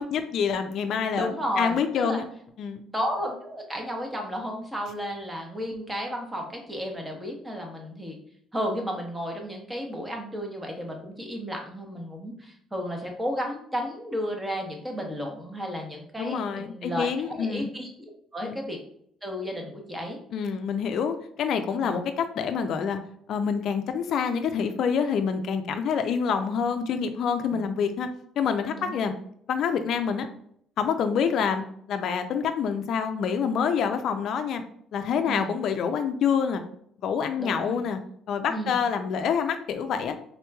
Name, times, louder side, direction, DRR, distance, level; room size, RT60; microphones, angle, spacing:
voice 1, 0.0-1.3 1.6-2.2 2.6-2.8 16.2-17.7 18.4-18.6 20.3-23.0 23.3-28.1 28.4-29.1 29.5-30.3 30.8-34.6 34.9-36.6 37.0-38.0 38.3-40.1, left 6 dB, 60° left, 7 dB, 0.3 m, -27 dB
voice 2, 1.1-2.2 2.9-8.2 8.5-17.9 18.3-18.8 19.2-20.2 21.8-22.0 27.5-27.6 28.8-29.1 35.2-35.5 37.4-37.8 38.5-38.8, equal, 10° right, 2 dB, 0.8 m, -33 dB
3.6 x 2.9 x 2.2 m, 0.66 s
cardioid pair, 110°, 0 cm